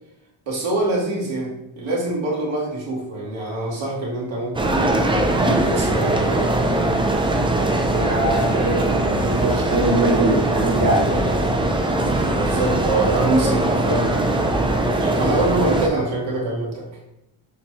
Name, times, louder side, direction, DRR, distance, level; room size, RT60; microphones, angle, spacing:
voice 1, 0.5-4.8 5.4-6.5 12.3-16.9, right 2 dB, 65° right, -4 dB, 1.6 m, -25 dB
sound 1, 4.6-15.9, right 1 dB, 10° right, 0.4 m, -21 dB
voice 2, 7.9-11.4 12.1-12.3, right 1 dB, 40° right, -1 dB, 1.2 m, -23 dB
6.4 x 2.3 x 3.1 m, 0.85 s
cardioid pair, 95°, 49 cm